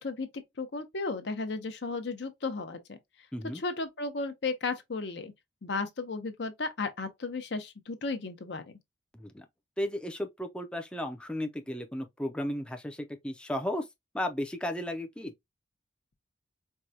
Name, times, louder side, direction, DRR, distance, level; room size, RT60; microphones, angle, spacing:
voice 1, 0.0-3.0 3.5-5.3 5.6-8.6, left 3 dB, 65° left, 0.7 m, -34 dB
voice 2, 9.1-9.5 9.8-13.9 14.1-15.3, left 1 dB, 5° left, 0.4 m, -34 dB
4.5 x 2.2 x 2.7 m
head